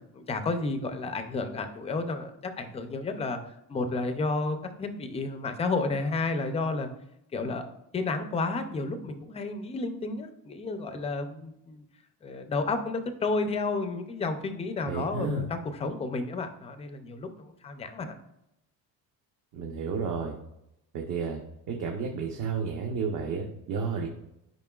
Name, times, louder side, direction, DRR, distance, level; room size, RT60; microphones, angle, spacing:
voice 1, 0.1-6.9 7.3-7.6 7.9-11.8 12.2-18.1, left 3 dB, 15° left, 8 dB, 0.4 m, -31 dB
voice 2, 14.9-15.4 19.5-20.3 20.9-21.4 21.7-24.1, right 5 dB, 50° right, 1 dB, 0.8 m, -31 dB
10.5 x 5.2 x 2.3 m, 0.83 s
cardioid pair, 175°, 40 cm